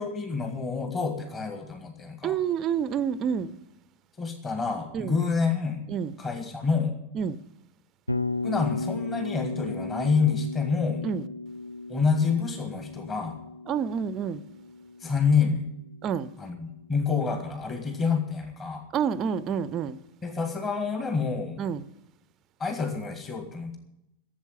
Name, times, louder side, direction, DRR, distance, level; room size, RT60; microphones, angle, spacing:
voice 1, 0.0-2.4 4.2-5.8 6.2-6.9 8.4-11.1 11.9-13.4 15.0-15.7 16.4-18.8 20.2-21.6 22.6-23.8, left 5 dB, 20° left, 1.9 m, -27 dB
voice 2, 2.2-3.5 4.9-5.1 5.9-6.1 7.2-7.4 11.0-11.2 13.7-14.4 16.0-16.3 18.9-19.9 21.6-21.8, right 7 dB, 30° right, 0.5 m, -28 dB
Bass guitar, 8.1-16.2, left 3 dB, 85° left, 0.5 m, -35 dB
12.5 x 7.5 x 9.6 m
figure-of-eight pair, 90°, 0 cm